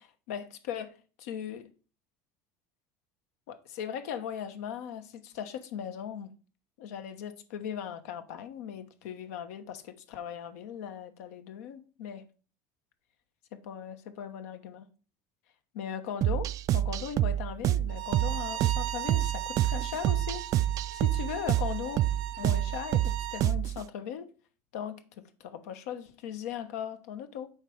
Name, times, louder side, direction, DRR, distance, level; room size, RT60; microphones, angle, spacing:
voice 1, 0.0-1.7 3.5-6.3 6.8-12.2 13.5-14.9 15.7-20.4 20.9-22.1 22.4-24.3 24.7-27.5, left 8 dB, 85° left, 1.1 m, -39 dB
sound 1, 16.2-23.8, right 13 dB, 45° right, 0.3 m, -28 dB
Bowed string instrument, 17.9-23.5, right 13 dB, 60° right, 0.7 m, -39 dB
7.7 x 5.1 x 4.6 m
supercardioid pair, 105°, 8 cm